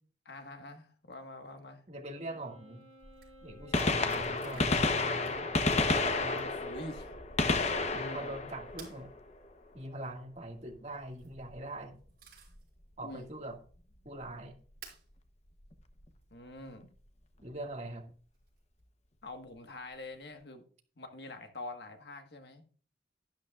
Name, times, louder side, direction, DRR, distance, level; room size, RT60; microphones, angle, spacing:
voice 1, 0.3-1.8 6.4-7.1 8.0-8.3 13.0-13.3 16.3-16.9 19.2-20.6 21.0-22.6, left 2 dB, 65° left, 1.6 m, -45 dB
voice 2, 1.9-2.8 3.4-5.6 6.2-6.5 7.9-9.1 9.7-12.0 13.0-13.6 14.1-14.5 17.4-18.0, right 1 dB, 40° right, 2.0 m, -42 dB
Wind instrument woodwind instrument, 2.1-6.6, right 1 dB, 20° left, 5.4 m, -58 dB
sound 1, 2.8-2.9 3.1-3.3 3.7-4.9 5.2-5.8 6.3-6.7 8.8-9.0 10.9-11.3 11.8-12.7 13.2-13.3 14.8-15.1 16.2-16.3 18.3-18.8, right 7 dB, 55° right, 5.3 m, -54 dB
Gunshot gunfire, 3.0-3.1 3.6-9.4 11.4-11.5 12.5-12.6 14.2-14.3 15.7-15.8 16.0-16.1, left 3 dB, 40° left, 0.9 m, -30 dB
12.0 x 11.5 x 2.4 m
head